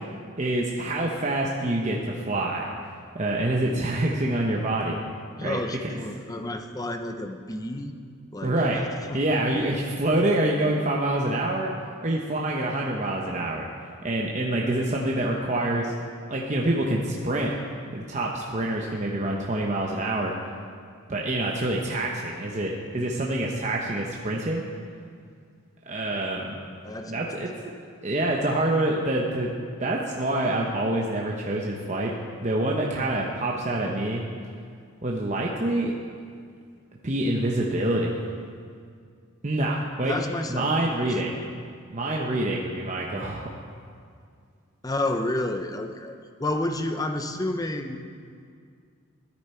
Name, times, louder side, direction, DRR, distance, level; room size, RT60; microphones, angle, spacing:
voice 1, 0.4-2.7 3.1-5.0 5.4-6.0 8.4-8.8 9.1-11.7 12.0-13.7 14.0-15.9 16.3-17.5 17.9-20.3 21.1-24.6 25.9-26.5 27.1-27.5 28.0-29.5 29.8-32.1 32.4-34.2 35.0-35.9 37.0-38.2 39.4-40.2 40.5-41.3 41.9-43.5, right 1 dB, 35° right, -2 dB, 0.8 m, -26 dB
voice 2, 5.4-7.9 8.3-8.8 9.1-9.2 26.8-27.2 40.0-40.7 41.2-41.4 44.8-48.0, left 1 dB, 15° left, 6 dB, 0.6 m, -30 dB
14.0 x 10.0 x 4.4 m, 2.2 s
head